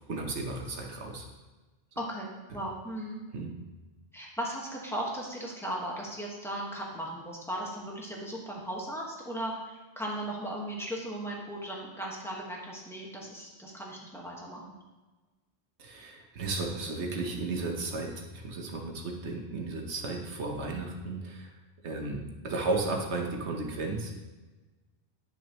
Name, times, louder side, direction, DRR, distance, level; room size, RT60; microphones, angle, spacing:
voice 1, 0.1-1.3 3.3-3.5 15.8-21.5 21.8-24.1, right 3 dB, 80° right, 2 dB, 1.3 m, -34 dB
voice 2, 1.9-3.2 4.1-14.7, right 1 dB, ahead, -3 dB, 1.4 m, -37 dB
10.0 x 6.1 x 3.0 m, 1.2 s
omnidirectional pair, 1.1 m